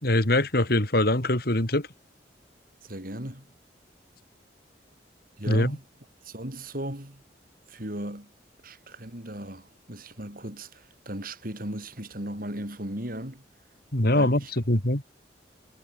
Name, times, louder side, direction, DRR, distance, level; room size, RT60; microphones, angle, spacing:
voice 1, 0.0-1.9 5.5-5.8 13.9-14.4 14.7-15.0, left 1 dB, 60° left, 3.3 m, -23 dB
voice 2, 2.8-3.5 5.4-5.8 6.2-7.2 7.7-8.3 8.6-13.4 14.1-14.5, right 1 dB, 50° right, 6.8 m, -37 dB
head